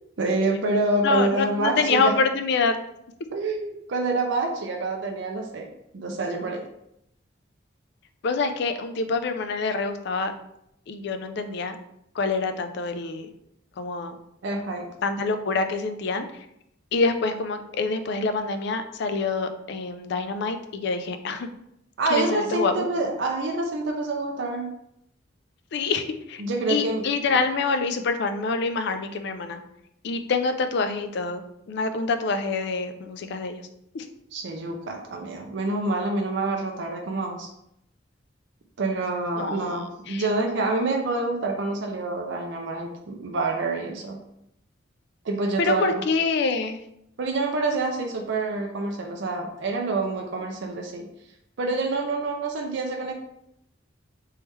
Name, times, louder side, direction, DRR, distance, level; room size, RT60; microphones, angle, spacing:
voice 1, 0.2-2.1 3.3-6.6 14.4-14.9 22.0-24.7 26.4-27.4 34.3-37.5 38.8-44.2 45.2-46.0 47.2-51.1 51.6-53.1, right 2 dB, 70° right, 1 dB, 0.5 m, -27 dB
voice 2, 1.0-2.7 8.2-10.3 10.9-11.7 12.2-13.3 13.8-14.2 15.0-16.3 16.9-21.5 22.1-22.9 25.7-26.4 26.7-29.6 30.0-31.4 31.7-33.6 33.9-34.1 39.4-39.8 40.1-40.2 45.6-46.8, left 4 dB, 65° left, 8 dB, 0.4 m, -26 dB
3.4 x 3.1 x 3.1 m, 0.79 s
head